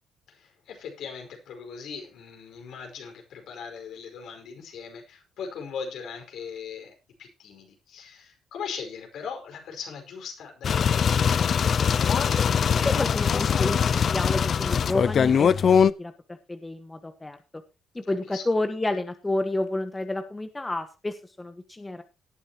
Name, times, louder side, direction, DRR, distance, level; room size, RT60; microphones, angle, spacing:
voice 1, 0.3-11.3 18.1-18.4, left 6 dB, 75° left, 3 dB, 5.2 m, -39 dB
sound 1, 10.6-15.9, left 7 dB, 50° left, 0.6 m, -22 dB
voice 2, 12.4-17.4 17.9-22.0, left 2 dB, 15° left, 8 dB, 1.4 m, -30 dB
18.0 x 9.8 x 3.0 m, 0.28 s
cardioid pair, 90°, 0 cm